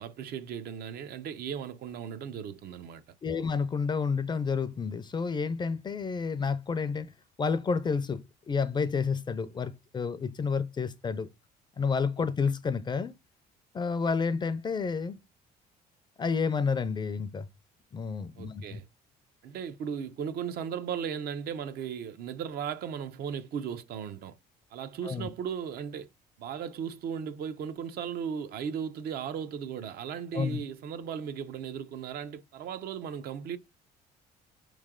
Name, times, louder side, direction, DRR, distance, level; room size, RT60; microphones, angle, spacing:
voice 1, 0.0-3.0 18.4-18.8 19.4-24.4 24.7-26.1 26.4-33.6, right 7 dB, 65° right, 0.6 m, -36 dB
voice 2, 3.2-7.1 7.4-11.3 11.8-13.1 13.7-15.2 16.2-17.5 17.9-18.8 25.0-25.3 30.3-30.6, left 5 dB, 25° left, 0.4 m, -30 dB
4.6 x 3.2 x 3.6 m
cardioid pair, 110°, 17 cm